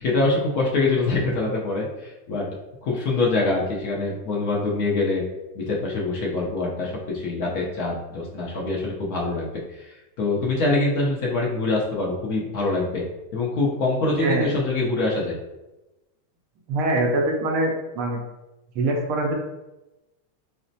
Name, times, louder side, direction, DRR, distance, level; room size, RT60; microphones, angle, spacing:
voice 1, 0.0-2.5 2.8-5.2 5.5-13.1 13.3-15.4, left 3 dB, 40° left, -3 dB, 0.6 m, -24 dB
voice 2, 14.2-14.5 16.7-18.2 18.8-19.3, right 2 dB, 35° right, 0 dB, 0.4 m, -23 dB
4.0 x 2.1 x 2.7 m, 1.0 s
supercardioid pair, 175°, 0 cm